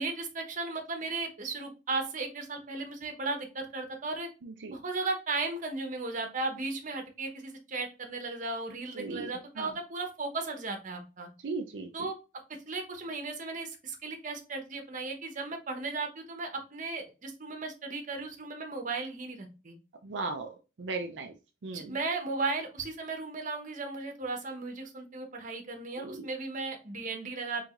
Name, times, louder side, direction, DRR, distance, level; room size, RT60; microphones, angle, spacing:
voice 1, 0.0-4.3 4.7-11.3 11.9-12.2 12.7-19.8 21.7-27.6, right 3 dB, 45° right, 4 dB, 1.0 m, -36 dB
voice 2, 4.4-4.7 8.9-9.7 11.4-11.9 20.0-21.3 21.6-22.0 26.0-26.3, right 3 dB, 75° right, 4 dB, 0.5 m, -37 dB
4.6 x 3.7 x 2.5 m, 0.30 s
head